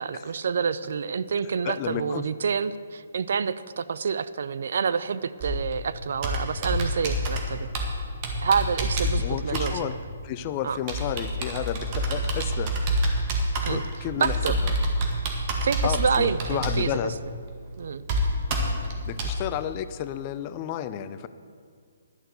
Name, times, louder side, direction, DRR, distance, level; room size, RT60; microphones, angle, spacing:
voice 1, 0.0-7.7 8.4-9.9 10.6-10.8 13.6-13.8 14.2-14.6 15.6-17.1 17.8-18.0, right 6 dB, 60° right, 15 dB, 0.4 m, -28 dB
voice 2, 1.6-2.2 9.2-10.0 10.2-13.2 13.7-14.4 14.6-14.7 15.8-17.1 19.1-21.3, left 11 dB, 30° left, 13 dB, 0.5 m, -32 dB
Computer keyboard, 5.4-19.4, equal, 35° right, 1.8 m, -28 dB
11.5 x 6.5 x 8.0 m, 2.1 s
figure-of-eight pair, 135°, 0 cm